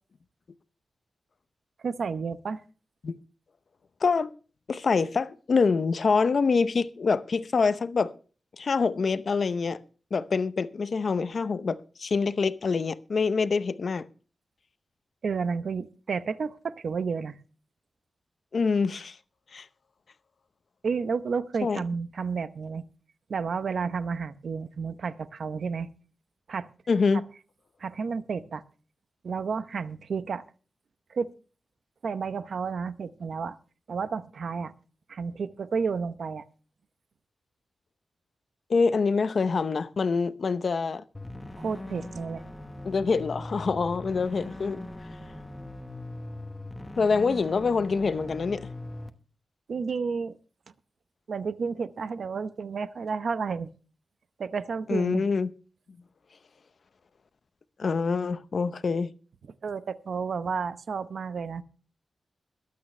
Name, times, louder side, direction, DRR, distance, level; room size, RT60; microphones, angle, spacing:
voice 1, 1.8-2.6 15.2-17.4 20.8-22.8 23.3-25.9 26.5-26.7 27.1-27.2 27.8-28.6 29.2-30.4 31.1-31.3 32.0-33.6 33.9-34.7 35.1-36.4 41.6-42.4 49.7-50.4 51.3-53.7 54.4-55.3 59.6-61.6, right 5 dB, 70° right, 0.8 m, -31 dB
voice 2, 4.7-8.1 8.6-9.8 10.1-14.1 18.5-19.2 19.5-19.7 21.6-21.8 26.9-27.2 38.7-41.0 42.8-44.9 47.0-48.7 54.9-55.5 57.8-59.1, left 4 dB, 55° left, 0.6 m, -25 dB
sound 1, 41.1-49.1, left 1 dB, 15° left, 1.0 m, -40 dB
22.0 x 8.5 x 3.2 m
wide cardioid pair, 140°, 0 cm